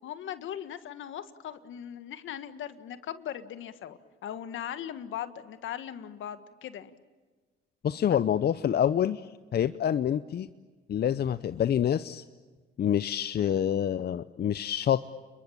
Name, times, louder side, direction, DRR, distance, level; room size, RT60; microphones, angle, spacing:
voice 1, 0.0-6.9 8.1-8.2, left 10 dB, 70° left, 11 dB, 1.7 m, -39 dB
voice 2, 7.8-9.2 9.5-10.5 10.9-12.2 12.8-15.1, left 9 dB, 50° left, 13 dB, 0.8 m, -27 dB
30.0 x 22.5 x 8.7 m, 1.3 s
supercardioid pair, 65°, 21 cm